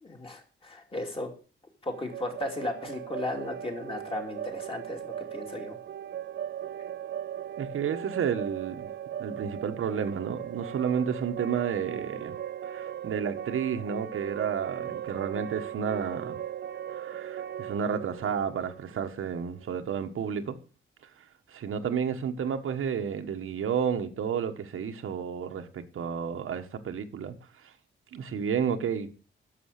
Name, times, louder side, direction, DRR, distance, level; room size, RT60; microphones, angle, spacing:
voice 1, 0.0-1.3 1.8-5.8, left 2 dB, 25° left, 2.6 m, -35 dB
sound 1, 1.9-19.6, right 10 dB, 55° right, 0.5 m, -38 dB
voice 2, 7.6-8.9 9.2-12.4 12.7-16.4 16.9-20.6 21.5-27.3 28.1-29.1, right 7 dB, 85° right, 1.4 m, -31 dB
11.5 x 7.1 x 6.7 m
wide cardioid pair, 150°, 21 cm